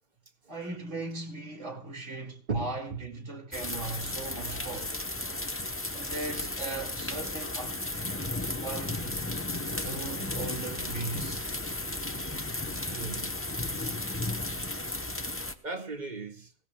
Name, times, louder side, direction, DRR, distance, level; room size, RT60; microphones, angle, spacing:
voice 1, 0.5-4.9 5.9-8.3 8.6-11.4, right 3 dB, 80° right, 2.7 m, -39 dB
voice 2, 2.5-3.0 12.8-13.3 15.6-16.5, right 4 dB, 40° right, 1.8 m, -36 dB
sound 1, 3.5-15.5, left 2 dB, 15° left, 0.7 m, -34 dB
19.5 x 17.0 x 2.3 m
omnidirectional pair, 1.2 m